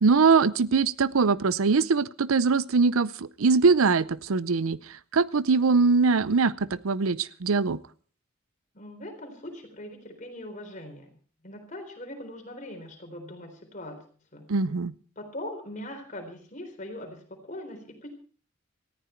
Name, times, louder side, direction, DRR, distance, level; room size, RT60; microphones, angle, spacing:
voice 1, 0.0-4.8 5.1-7.8 14.5-14.9, right 4 dB, 80° right, 19 dB, 0.6 m, -22 dB
voice 2, 8.7-11.2 11.4-14.0 14.3-14.5 15.2-18.1, left 1 dB, 35° left, 4 dB, 3.9 m, -41 dB
19.0 x 14.5 x 4.5 m, 0.44 s
head